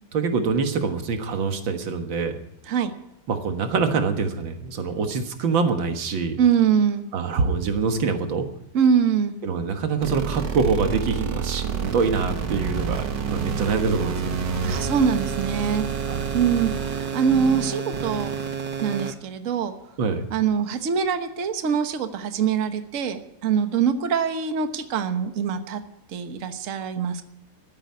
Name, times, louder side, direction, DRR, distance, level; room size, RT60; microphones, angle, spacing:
voice 1, 0.1-2.4 3.3-6.4 7.1-8.5 9.4-14.4 16.0-16.4 20.0-20.3, right 5 dB, 90° right, 7 dB, 2.2 m, -25 dB
voice 2, 6.4-7.1 8.7-9.4 14.6-15.8 16.3-18.3 18.8-19.7 20.3-25.8 26.1-27.2, right 7 dB, 45° right, 8 dB, 1.4 m, -23 dB
sound 1, 10.0-19.1, right 6 dB, 65° right, 2.0 m, -28 dB
13.0 x 10.5 x 9.6 m, 0.82 s
omnidirectional pair, 2.0 m